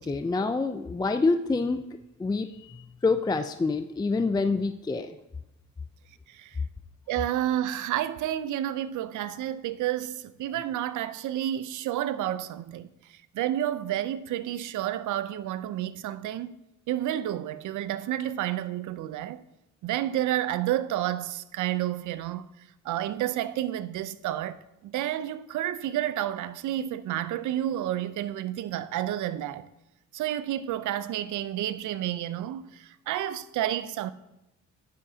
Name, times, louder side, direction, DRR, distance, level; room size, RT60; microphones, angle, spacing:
voice 1, 0.0-1.8 2.2-5.2, left 3 dB, 15° left, 0.4 m, -27 dB
voice 2, 6.3-6.6 7.1-16.5 16.9-19.4 19.8-22.5 22.8-29.7 30.1-34.1, right 12 dB, 75° right, 0.6 m, -30 dB
11.0 x 10.0 x 2.8 m
cardioid pair, 90°, 30 cm